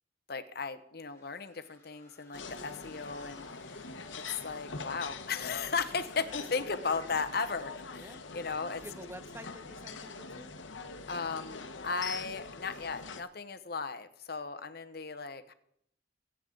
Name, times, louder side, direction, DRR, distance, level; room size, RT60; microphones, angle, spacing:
voice 1, 0.3-3.9 4.3-8.8 11.1-15.5, left 4 dB, 55° left, 12 dB, 1.0 m, -36 dB
sound 1, 1.0-5.9, left 3 dB, 15° left, 3.6 m, -61 dB
sound 2, 2.3-13.2, left 4 dB, 90° left, 1.1 m, -44 dB
voice 2, 8.0-8.3 8.8-10.5, right 1 dB, 15° right, 10 dB, 0.9 m, -49 dB
23.5 x 9.1 x 3.9 m, 0.73 s
head